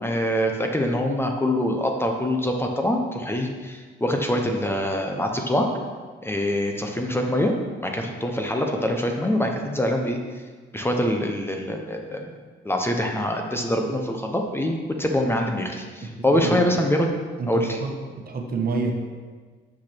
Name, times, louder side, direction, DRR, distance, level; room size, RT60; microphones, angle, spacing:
voice 1, 0.0-5.7 6.2-7.5 7.8-10.2 10.7-12.4 12.6-17.1 17.5-17.8, left 1 dB, 10° left, 2 dB, 0.9 m, -24 dB
voice 2, 16.0-16.6 17.4-17.9 18.3-18.9, right 4 dB, 50° right, 2 dB, 1.3 m, -28 dB
6.2 x 5.9 x 6.0 m, 1.5 s
cardioid pair, 90°, 20 cm